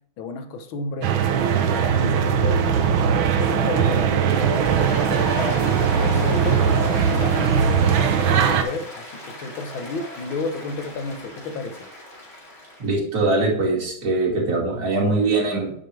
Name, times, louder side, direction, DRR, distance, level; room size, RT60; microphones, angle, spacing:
voice 1, 0.2-3.0 3.4-6.8 7.1-11.9, left 3 dB, 75° left, 1.8 m, -32 dB
sound 1, 1.0-8.6, right 7 dB, 75° right, 1.7 m, -20 dB
Applause, 4.1-12.9, left 1 dB, 30° left, 2.6 m, -36 dB
voice 2, 12.8-15.7, right 2 dB, 50° right, 2.9 m, -22 dB
9.3 x 6.9 x 3.3 m
omnidirectional pair, 2.2 m